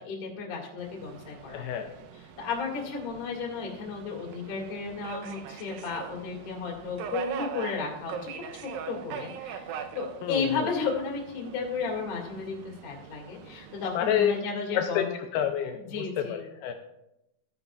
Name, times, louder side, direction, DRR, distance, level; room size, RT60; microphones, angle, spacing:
voice 1, 0.0-1.8 2.4-8.3 8.9-9.6 9.9-15.1 15.9-16.4, left 5 dB, 45° left, -1 dB, 2.4 m, -33 dB
Subway metro underground, 0.8-14.4, right 7 dB, 85° right, 2.1 m, -42 dB
voice 2, 1.5-1.9 10.2-10.7 13.9-14.3 14.7-16.7, left 9 dB, 80° left, 5 dB, 2.2 m, -28 dB
14.5 x 9.6 x 2.3 m, 0.87 s
omnidirectional pair, 4.8 m